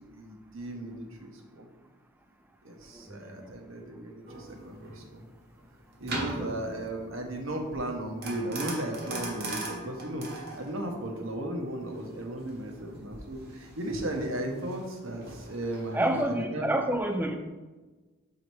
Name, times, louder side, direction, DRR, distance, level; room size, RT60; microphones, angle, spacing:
voice 1, 0.0-1.7 2.6-5.3 6.0-10.3 10.5-16.6, right 1 dB, 65° right, 2 dB, 1.0 m, -36 dB
voice 2, 2.9-3.5 6.5-6.6 15.9-17.3, right 1 dB, 10° right, 6 dB, 0.3 m, -29 dB
sound 1, 4.3-16.2, right 2 dB, 50° right, 1.1 m, -40 dB
4.9 x 4.1 x 4.7 m, 1.2 s
head